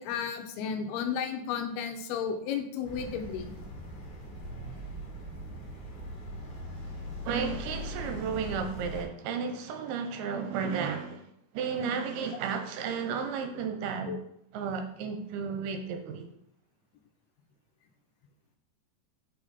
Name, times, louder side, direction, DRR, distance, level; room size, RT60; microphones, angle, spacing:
voice 1, 0.0-3.5 14.1-14.2, left 7 dB, 90° left, 2.6 m, -33 dB
sound 1, 2.8-9.0, equal, 60° left, 2.3 m, -40 dB
voice 2, 7.2-11.2 11.5-14.2 14.5-16.3, right 6 dB, 80° right, 2.6 m, -33 dB
5.7 x 4.9 x 4.0 m
omnidirectional pair, 4.4 m